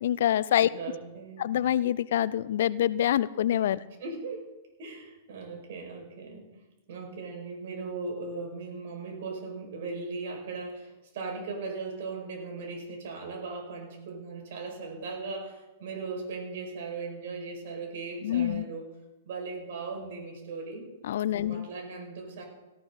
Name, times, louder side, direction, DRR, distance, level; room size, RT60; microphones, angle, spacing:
voice 1, 0.0-0.7 1.4-3.8 18.2-18.6 21.0-21.7, left 11 dB, 60° left, 20 dB, 0.5 m, -26 dB
voice 2, 0.7-1.4 4.0-4.4 4.8-6.4 6.9-18.9 19.2-20.9 21.3-22.4, right 4 dB, 60° right, 2 dB, 5.5 m, -38 dB
18.0 x 14.0 x 4.1 m, 1.1 s
figure-of-eight pair, 105°, 0 cm